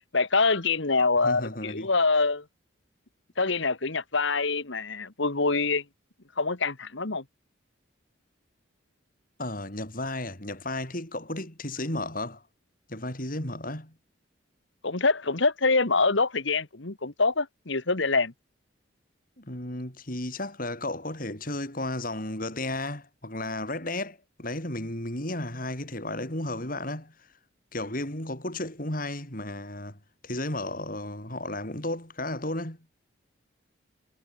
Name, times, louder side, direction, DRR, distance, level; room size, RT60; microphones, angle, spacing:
voice 1, 0.1-2.4 3.4-5.8 6.4-7.2 14.8-18.3, left 3 dB, 65° left, 1.7 m, -25 dB
voice 2, 1.2-1.9 9.4-12.4 12.9-13.9 19.4-27.1 27.7-30.0 30.2-32.8, left 1 dB, 45° left, 5.1 m, -33 dB
head